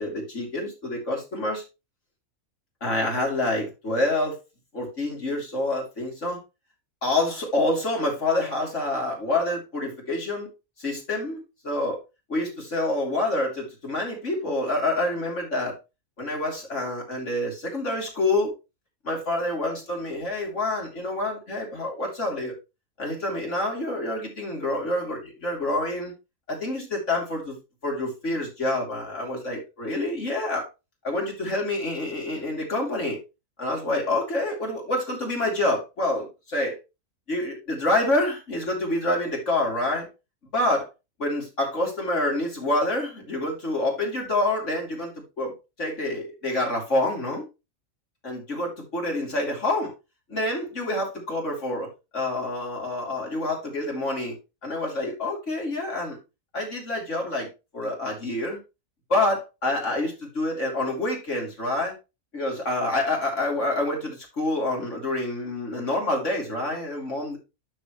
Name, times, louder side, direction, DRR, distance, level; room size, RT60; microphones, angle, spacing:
voice 1, 0.0-1.6 2.8-4.4 4.7-6.4 7.0-10.5 10.8-12.0 12.3-15.7 16.2-18.5 19.0-22.5 23.0-26.1 26.5-27.6 27.8-30.7 31.0-33.2 33.6-36.8 37.3-40.1 40.5-40.9 41.2-45.5 45.8-47.5 48.2-49.9 50.3-54.3 54.6-56.2 56.5-57.5 57.7-58.6 59.1-61.9 62.3-67.4, left 2 dB, 55° left, -1 dB, 3.8 m, -27 dB
12.5 x 4.9 x 3.2 m, 0.26 s
omnidirectional pair, 1.5 m